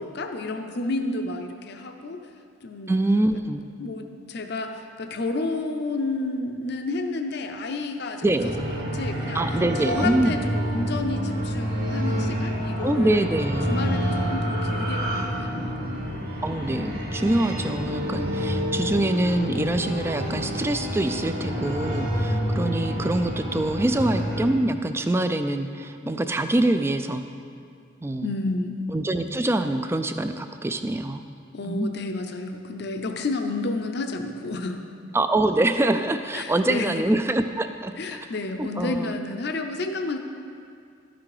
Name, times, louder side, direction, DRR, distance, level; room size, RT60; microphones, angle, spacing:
voice 1, 0.0-2.2 2.6-3.0 3.8-8.3 8.7-9.4 9.8-13.3 13.7-15.7 28.2-28.8 31.5-34.8 36.3-37.0 38.0-40.2, left 2 dB, 55° left, 5 dB, 0.6 m, -30 dB
voice 2, 2.9-3.6 8.2-8.5 9.3-10.4 12.8-13.7 16.4-27.2 28.0-28.3 28.9-31.2 31.6-31.9 35.1-37.9 38.6-39.1, right 1 dB, 15° right, 8 dB, 0.3 m, -24 dB
sound 1, 8.4-24.4, equal, 55° right, 1.7 m, -28 dB
12.5 x 6.0 x 4.9 m, 2.3 s
head